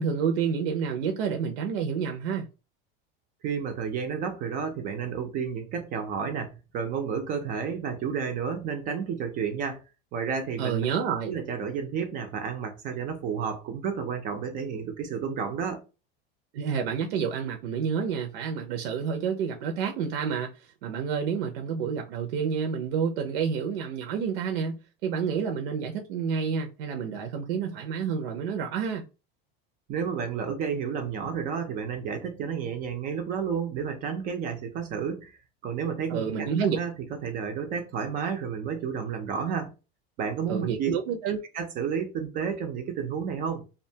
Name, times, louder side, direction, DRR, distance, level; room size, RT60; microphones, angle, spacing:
voice 1, 0.0-2.5 10.6-11.3 16.5-29.1 36.1-36.8 40.5-41.4, right 6 dB, 80° right, 0.5 m, -29 dB
voice 2, 3.4-9.8 10.1-10.9 11.3-15.8 29.9-35.4 35.6-36.5 36.7-36.9 37.2-39.7 40.2-40.9 41.5-43.6, right 6 dB, 30° right, 0.4 m, -31 dB
2.5 x 2.2 x 2.7 m
supercardioid pair, 150°, 29 cm